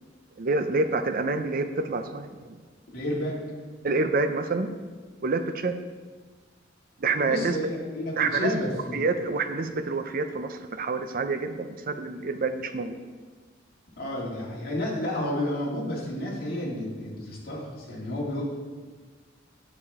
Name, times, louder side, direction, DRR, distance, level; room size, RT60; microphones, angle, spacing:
voice 1, 0.4-2.5 3.8-4.7 5.2-5.8 7.0-7.6 8.2-8.6 8.9-13.0, right 3 dB, 50° right, 8 dB, 0.6 m, -27 dB
voice 2, 2.9-3.4 7.0-9.1 14.0-18.4, left 1 dB, 55° left, -4 dB, 2.3 m, -31 dB
9.6 x 7.0 x 3.6 m, 1.4 s
head